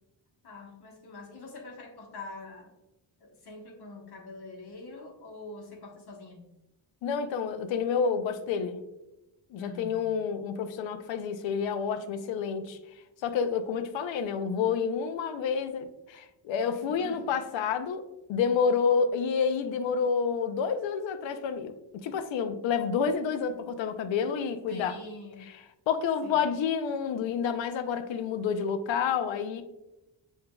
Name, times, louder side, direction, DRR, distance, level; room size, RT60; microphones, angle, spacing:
voice 1, 0.4-2.7 3.2-6.4 9.6-10.2 16.7-17.2 24.7-25.5 26.2-26.4, left 3 dB, 55° left, 0 dB, 1.2 m, -45 dB
voice 2, 7.0-8.8 9.5-12.8 13.2-18.0 18.3-25.0 25.5-25.6 25.9-29.6, left 6 dB, 75° left, 9 dB, 0.6 m, -29 dB
7.5 x 2.7 x 2.2 m, 0.96 s
cardioid pair, 130°, 46 cm